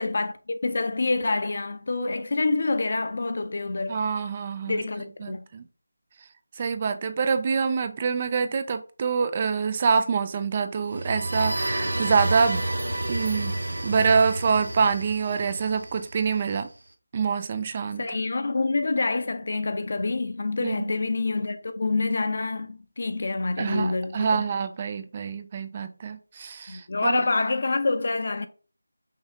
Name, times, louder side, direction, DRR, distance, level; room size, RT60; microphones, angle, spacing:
voice 1, 0.0-4.0 4.7-5.4 17.8-24.4 26.7-28.5, left 3 dB, 50° left, 0.6 m, -27 dB
voice 2, 3.9-4.8 5.2-5.6 6.6-12.6 13.1-13.5 13.8-16.7 17.1-18.1 20.6-20.9 23.6-27.2, right 5 dB, 25° right, 0.3 m, -26 dB
sound 1, 10.8-16.6, right 1 dB, 80° right, 0.9 m, -30 dB
5.6 x 2.7 x 3.4 m
figure-of-eight pair, 170°, 0 cm